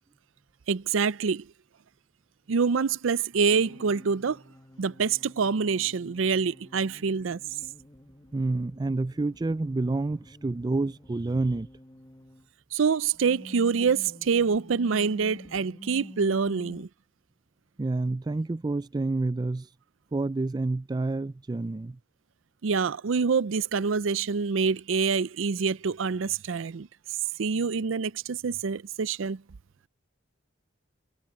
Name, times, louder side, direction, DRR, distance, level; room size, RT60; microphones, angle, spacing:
voice 1, 0.7-1.4 2.5-4.4 4.8-7.4 12.7-16.9 22.6-26.9 27.4-29.4, right 5 dB, 80° right, 0.5 m, -26 dB
sound 1, 3.3-12.5 13.1-16.8, left 1 dB, 20° left, 1.6 m, -49 dB
voice 2, 8.3-11.7 17.8-19.7 20.1-22.0, right 2 dB, 20° right, 0.3 m, -28 dB
head